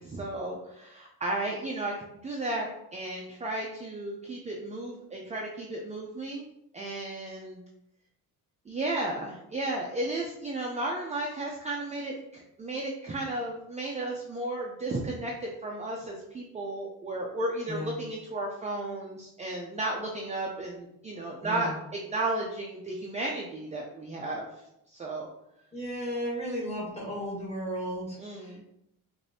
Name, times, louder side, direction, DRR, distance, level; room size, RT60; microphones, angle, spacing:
voice 1, 0.0-6.5 6.7-7.6 8.7-24.5 24.9-25.3 28.2-28.6, right 2 dB, 20° right, -1 dB, 0.4 m, -34 dB
voice 2, 21.4-21.7 25.7-28.7, equal, 20° left, -5 dB, 1.4 m, -34 dB
4.9 x 2.6 x 2.7 m, 0.81 s
cardioid pair, 130°, 35 cm